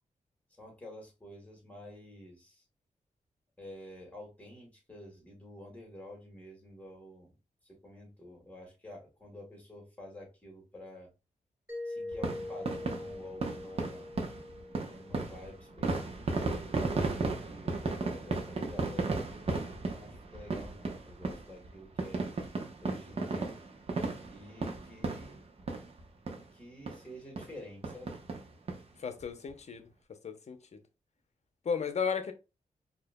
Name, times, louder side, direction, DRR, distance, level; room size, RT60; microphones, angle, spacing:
voice 1, 0.5-2.6 3.6-7.3 7.6-11.1 11.8-14.1 14.9-22.2 22.8-23.6 24.3-25.4 26.3-28.2, left 1 dB, 10° left, 2.2 m, -50 dB
Mallet percussion, 11.7-16.3, left 2 dB, 15° right, 1.7 m, -43 dB
sound 1, 12.1-26.0 26.3-26.4 26.9-27.0 27.4-27.5 27.8-28.8 29.2-29.3 29.5-29.6, right 3 dB, 50° right, 1.0 m, -35 dB
voice 2, 29.0-29.9 30.2-30.6 31.6-32.3, left 6 dB, 55° left, 0.7 m, -34 dB
4.8 x 2.8 x 2.2 m
cardioid pair, 85°, 13 cm